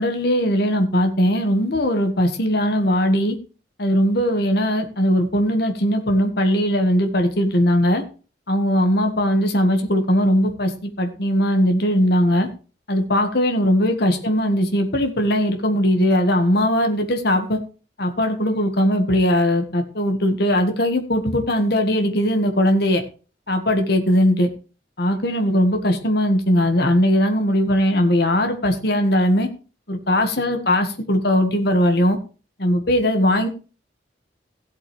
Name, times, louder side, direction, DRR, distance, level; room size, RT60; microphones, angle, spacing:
voice 1, 0.0-3.4 3.8-8.0 8.5-12.5 12.9-17.6 18.0-23.0 23.5-24.5 25.0-29.5 29.9-32.2 32.6-33.5, equal, 60° left, 5 dB, 1.7 m, -19 dB
16.5 x 8.0 x 3.4 m, 0.35 s
head